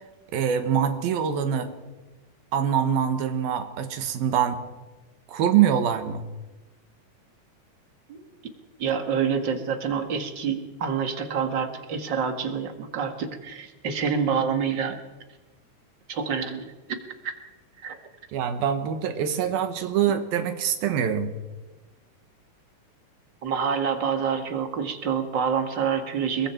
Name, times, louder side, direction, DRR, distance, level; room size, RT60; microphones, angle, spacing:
voice 1, 0.3-1.7 2.5-4.6 5.3-6.2 18.3-21.3, right 8 dB, 80° right, 8 dB, 3.2 m, -24 dB
voice 2, 8.8-15.0 16.1-16.7 17.2-17.3 17.8-18.0 23.4-26.5, right 6 dB, 40° right, 6 dB, 1.8 m, -27 dB
29.5 x 22.0 x 4.5 m, 1.1 s
omnidirectional pair, 4.2 m